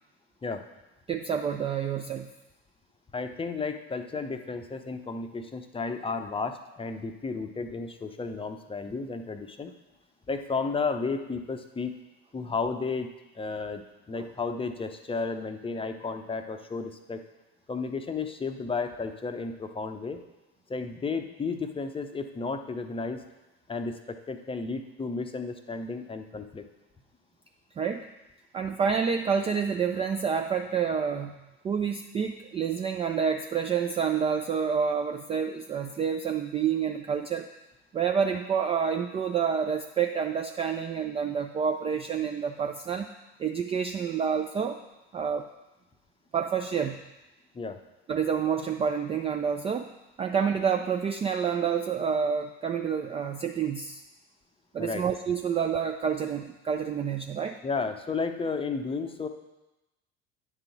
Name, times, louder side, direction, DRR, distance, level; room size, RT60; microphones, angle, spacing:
voice 1, 1.1-2.3 14.2-14.3 27.8-28.1 28.5-31.3 31.6-37.5 37.9-43.1 43.4-44.8 45.1-45.5 46.3-47.0 48.1-49.9 50.2-54.0 54.7-57.6, right 7 dB, 20° right, 6 dB, 0.3 m, -28 dB
voice 2, 3.1-9.7 10.3-12.0 12.3-13.1 13.3-17.2 17.7-20.2 20.7-23.2 23.7-26.6 47.5-47.8 54.8-55.1 57.6-59.3, left 4 dB, 15° left, 7 dB, 0.7 m, -33 dB
9.5 x 3.8 x 5.8 m, 1.0 s
figure-of-eight pair, 65°, 34 cm